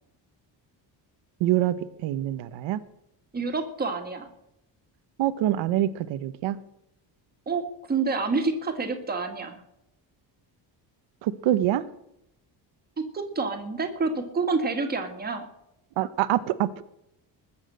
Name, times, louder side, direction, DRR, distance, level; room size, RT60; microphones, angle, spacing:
voice 1, 1.4-1.8 2.0-2.8 5.2-6.6 11.2-11.8 16.0-16.8, right 13 dB, 90° right, 12 dB, 0.9 m, -25 dB
voice 2, 3.3-4.3 7.5-9.6 13.0-15.5, right 4 dB, 20° right, 4 dB, 2.0 m, -28 dB
20.5 x 7.2 x 7.8 m, 0.82 s
cardioid pair, 180°, 44 cm